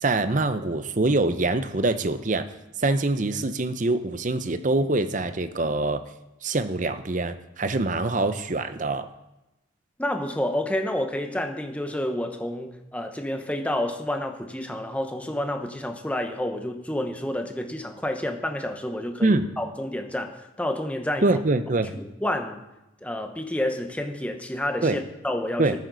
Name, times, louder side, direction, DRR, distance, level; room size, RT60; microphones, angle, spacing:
voice 1, 0.0-2.5 2.8-6.0 6.4-9.1 19.2-19.5 21.2-21.9 24.8-25.0 25.6-25.7, right 2 dB, 40° right, 10 dB, 0.7 m, -24 dB
voice 2, 10.0-21.3 21.9-22.6 23.0-25.7, left 1 dB, 5° left, 5 dB, 0.8 m, -29 dB
15.0 x 9.4 x 4.0 m, 0.94 s
head